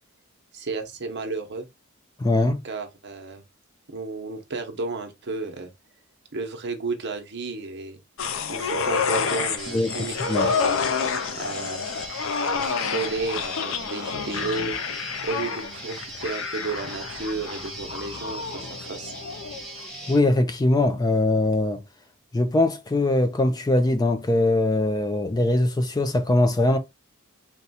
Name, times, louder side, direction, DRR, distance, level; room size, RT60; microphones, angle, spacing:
voice 1, 0.5-1.7 2.6-3.4 3.9-5.7 6.3-8.0 8.5-10.8 11.3-11.9 12.5-19.1, right 3 dB, 55° right, 0.9 m, -33 dB
voice 2, 2.2-2.6 9.7-10.5 20.1-21.8 22.3-26.8, left 2 dB, 20° left, 0.4 m, -22 dB
sound 1, 8.2-19.7 20.0-20.2, left 5 dB, 70° left, 0.5 m, -29 dB
sound 2, 9.6-20.2, right 1 dB, 5° left, 1.1 m, -40 dB
4.1 x 2.3 x 4.1 m
head